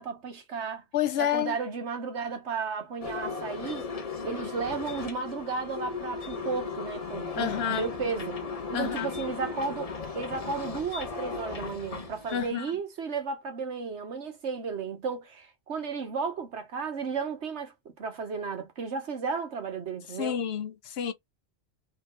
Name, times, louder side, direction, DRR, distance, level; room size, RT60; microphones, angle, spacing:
voice 1, 0.0-0.8 1.2-3.9 4.2-8.4 8.7-20.4, right 5 dB, 75° right, 1.4 m, -34 dB
voice 2, 0.9-1.6 7.4-7.9 8.7-9.1 12.3-12.7 20.2-21.1, left 9 dB, 65° left, 0.8 m, -29 dB
sound 1, 3.0-12.5, left 5 dB, 35° left, 0.8 m, -36 dB
3.7 x 3.3 x 3.8 m
omnidirectional pair, 1.2 m